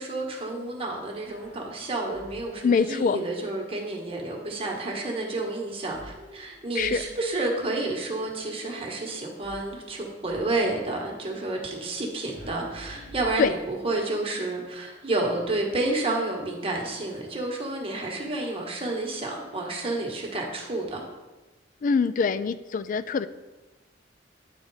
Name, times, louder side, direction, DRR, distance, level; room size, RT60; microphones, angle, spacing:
voice 1, 0.0-21.0, right 2 dB, 30° right, 0 dB, 1.4 m, -30 dB
sound 1, 1.2-2.7 5.9-7.4 9.4-10.6 12.3-14.0, right 1 dB, 65° left, 2.6 m, -48 dB
voice 2, 2.6-3.2 6.8-7.0 13.4-13.5 21.8-23.3, left 5 dB, 45° left, 14 dB, 0.3 m, -24 dB
10.0 x 4.0 x 4.8 m, 1.1 s
head